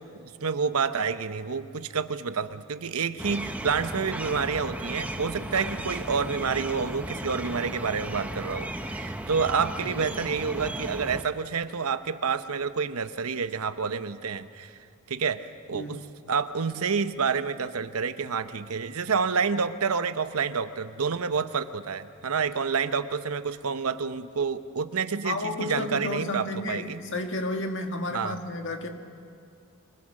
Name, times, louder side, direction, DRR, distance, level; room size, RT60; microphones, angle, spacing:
voice 1, 0.0-14.8 15.1-27.0 28.1-28.4, right 5 dB, 75° right, 11 dB, 0.8 m, -29 dB
sound 1, 3.2-11.2, right 1 dB, 5° right, 0.9 m, -35 dB
voice 2, 25.2-28.9, left 2 dB, 55° left, 4 dB, 1.7 m, -32 dB
26.0 x 19.5 x 6.5 m, 2.3 s
head